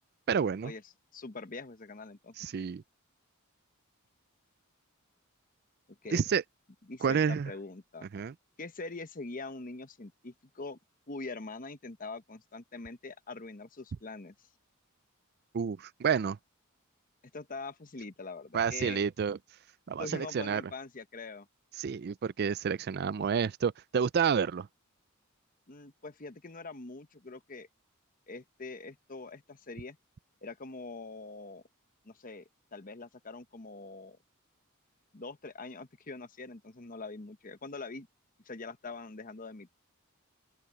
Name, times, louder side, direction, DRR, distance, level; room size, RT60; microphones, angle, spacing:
voice 1, 0.3-0.7 2.4-2.8 6.1-6.4 7.0-7.5 8.1-8.3 15.5-16.4 18.5-19.4 19.9-20.6 21.8-24.7, right 6 dB, 50° right, 0.4 m, -29 dB
voice 2, 1.1-2.4 5.9-6.2 6.9-8.1 8.6-10.8 11.1-14.3 17.3-19.0 20.0-21.5 25.7-27.7 28.3-30.0 30.4-31.6 32.0-34.2 35.1-38.1 38.4-39.7, left 3 dB, 40° left, 1.1 m, -43 dB
open air
head